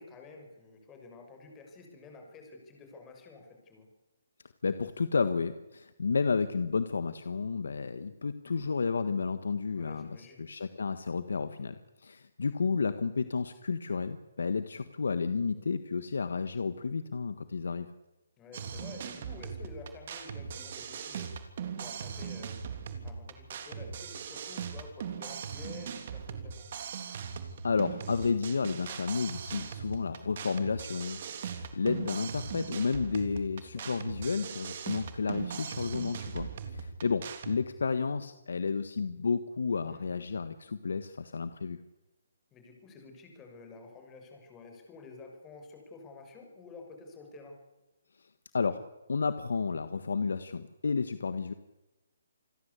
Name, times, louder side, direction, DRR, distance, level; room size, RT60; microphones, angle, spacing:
voice 1, 0.0-3.9 9.7-10.5 18.4-21.3 21.8-22.6 23.0-26.7 33.8-34.3 39.9-40.1 42.5-47.6, left 3 dB, 15° left, 3 dB, 5.9 m, -50 dB
voice 2, 4.6-17.9 27.6-41.8 48.2-48.3 48.5-48.8 49.1-51.5, left 5 dB, 80° left, 11 dB, 1.5 m, -31 dB
sound 1, 18.5-37.6, right 7 dB, 45° right, 3.4 m, -40 dB
28.0 x 20.5 x 8.4 m, 1.0 s
hypercardioid pair, 165°, 0 cm